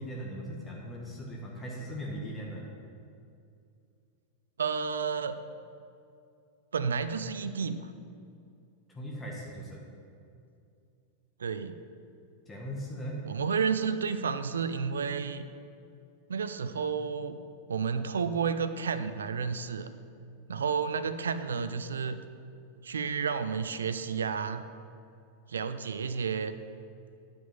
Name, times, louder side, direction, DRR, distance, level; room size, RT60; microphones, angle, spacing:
voice 1, 0.0-2.7 8.9-9.8 12.4-13.2, equal, 15° left, -3 dB, 1.4 m, -39 dB
voice 2, 4.6-5.4 6.7-7.9 11.4-11.7 13.3-15.5 16.3-17.4 17.7-19.9 20.5-22.2 22.8-24.6 25.5-26.5, right 6 dB, 70° right, 11 dB, 0.4 m, -31 dB
10.0 x 5.1 x 5.4 m, 2.5 s
figure-of-eight pair, 90°, 0 cm